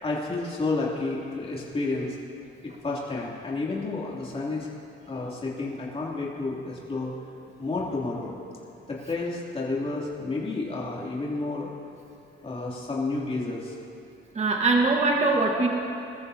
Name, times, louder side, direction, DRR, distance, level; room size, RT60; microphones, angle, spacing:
voice 1, 0.0-2.2 2.6-4.7 5.1-7.1 7.6-8.3 8.9-11.7 12.4-13.8, left 3 dB, 30° left, -4 dB, 2.9 m, -30 dB
voice 2, 14.3-15.7, right 3 dB, 35° right, 1 dB, 1.5 m, -22 dB
21.5 x 14.0 x 2.8 m, 2.8 s
cardioid pair, 90°, 20 cm